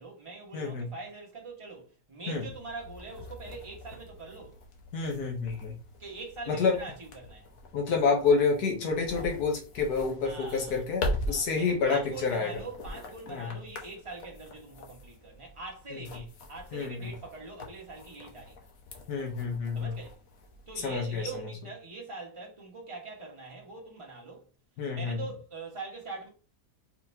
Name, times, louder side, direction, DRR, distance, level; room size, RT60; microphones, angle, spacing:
voice 1, 0.0-4.6 6.0-7.5 10.2-10.8 11.3-18.5 19.7-20.2 20.7-24.5 24.9-26.3, right 3 dB, 20° right, 1.4 m, -43 dB
voice 2, 0.5-0.9 2.3-2.4 4.9-5.7 6.5-6.8 7.7-12.6 13.3-13.5 16.7-17.1 19.1-19.9 20.8-21.2 24.8-25.2, left 4 dB, 80° left, 1.6 m, -28 dB
sound 1, 2.3-21.4, left 1 dB, 65° left, 1.3 m, -42 dB
4.5 x 4.0 x 2.8 m
omnidirectional pair, 1.6 m